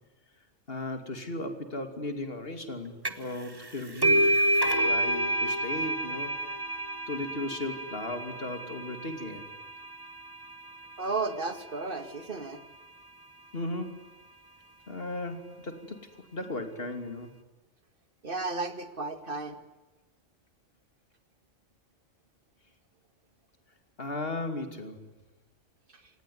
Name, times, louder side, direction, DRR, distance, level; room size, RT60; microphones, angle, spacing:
voice 1, 0.7-4.3 4.6-6.7 7.1-9.4 13.5-14.0 14.9-17.3 24.0-25.1, left 2 dB, 50° left, 7 dB, 3.0 m, -36 dB
sound 1, 3.1-3.4 3.6-10.9, right 1 dB, 20° right, 1.3 m, -29 dB
voice 2, 11.0-12.6 18.2-19.6 25.9-26.0, right 3 dB, 45° right, 10 dB, 2.2 m, -33 dB
26.5 x 19.0 x 9.4 m, 1.1 s
omnidirectional pair, 1.2 m